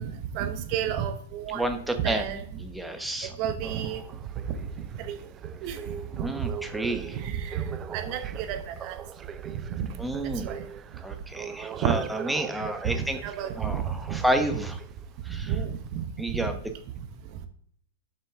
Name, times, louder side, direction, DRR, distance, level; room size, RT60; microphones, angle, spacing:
voice 1, 0.0-1.6 2.0-2.4 3.4-4.0 4.5-4.6 5.0-5.2 5.6-5.8 6.1-6.2 7.1-7.6 7.9-9.0 9.8-9.9 10.4-10.6 11.8-11.9 13.2-14.2 15.4-16.1, right 9 dB, 45° right, 8 dB, 0.9 m, -31 dB
voice 2, 1.5-2.2 2.6-3.3 6.2-7.2 10.0-10.5 11.0-13.2 13.6-14.8 15.2-15.5 16.2-16.6, right 1 dB, 5° right, 6 dB, 0.9 m, -30 dB
sound 1, 3.6-15.2 15.9-16.0, right 7 dB, 25° right, 0.4 m, -42 dB
6.8 x 6.5 x 3.6 m, 0.62 s
hypercardioid pair, 110°, 0 cm